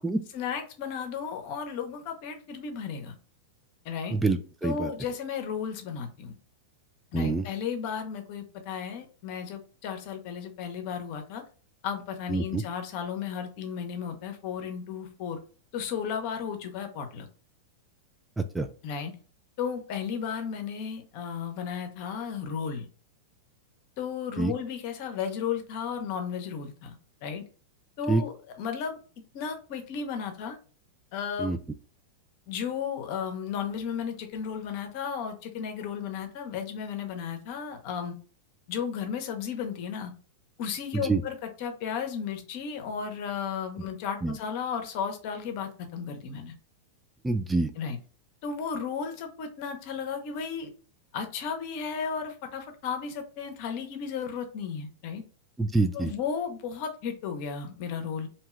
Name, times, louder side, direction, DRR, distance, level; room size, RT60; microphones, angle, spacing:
voice 1, 0.3-3.1 3.8-4.2 4.6-6.3 7.1-11.4 11.8-15.4 15.7-17.3 18.8-19.1 19.6-22.9 24.0-27.4 28.0-29.0 29.3-30.6 31.1-31.5 32.5-38.1 38.7-40.1 40.6-46.5 47.8-48.0 48.4-50.7 51.1-55.2 55.9-58.3, left 7 dB, 50° left, 5 dB, 0.8 m, -34 dB
voice 2, 4.1-4.9 7.1-7.4 12.3-12.6 18.5-18.7 24.4-24.5 28.1-28.2 31.4-31.6 40.9-41.2 44.2-44.4 47.2-47.7 55.6-56.1, right 3 dB, 10° right, 7 dB, 0.3 m, -26 dB
2.8 x 2.2 x 3.1 m, 0.38 s
hypercardioid pair, 100°, 0 cm